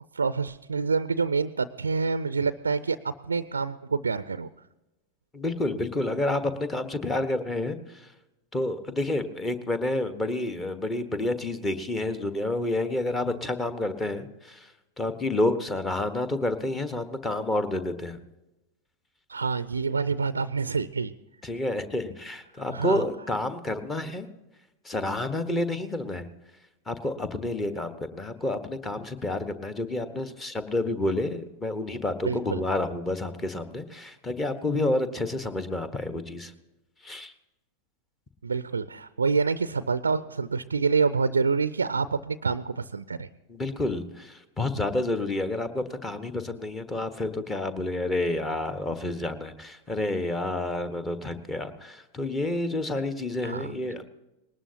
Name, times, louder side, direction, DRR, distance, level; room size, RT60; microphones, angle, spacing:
voice 1, 0.1-4.5 19.3-21.1 22.7-23.0 32.2-32.6 38.4-43.3 53.4-53.7, right 4 dB, 75° right, 15 dB, 0.4 m, -27 dB
voice 2, 5.3-7.8 8.5-14.6 15.0-18.2 21.4-24.3 24.8-26.3 26.9-36.5 37.0-37.3 43.5-54.0, left 2 dB, 15° left, 11 dB, 1.4 m, -29 dB
20.0 x 19.0 x 2.9 m, 1.0 s
figure-of-eight pair, 90°, 0 cm